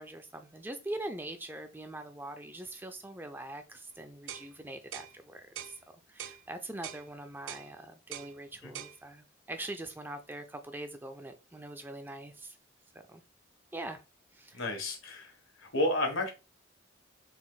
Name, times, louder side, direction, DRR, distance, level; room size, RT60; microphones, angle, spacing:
voice 1, 0.0-5.8 6.1-12.6 13.1-13.2 13.7-14.0 14.3-14.6, right 1 dB, 10° right, 0.3 m, -43 dB
sound 1, 4.3-4.5 4.9-5.1 5.6-5.8 6.2-6.4 6.8-7.0 7.5-7.7 8.1-8.3 8.7-9.0, right 10 dB, 80° right, 0.4 m, -42 dB
voice 2, 14.5-15.3 15.6-16.3, left 1 dB, 90° left, 1.6 m, -31 dB
4.1 x 2.5 x 4.0 m
head